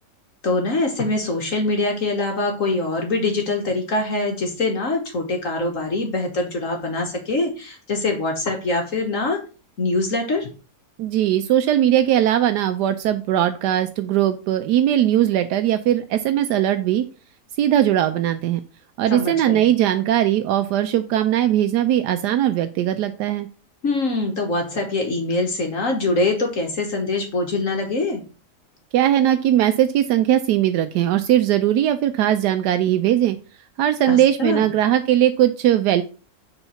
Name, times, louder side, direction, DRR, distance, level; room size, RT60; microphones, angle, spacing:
voice 1, 0.4-9.4 9.8-10.5 19.1-19.7 23.8-28.2 34.1-34.7, left 2 dB, 55° left, 3 dB, 1.6 m, -23 dB
voice 2, 11.0-17.0 17.6-18.6 19.0-23.5 28.9-33.4 33.8-36.0, right 11 dB, 80° right, 9 dB, 1.2 m, -19 dB
7.1 x 3.9 x 5.7 m, 0.34 s
omnidirectional pair, 1.8 m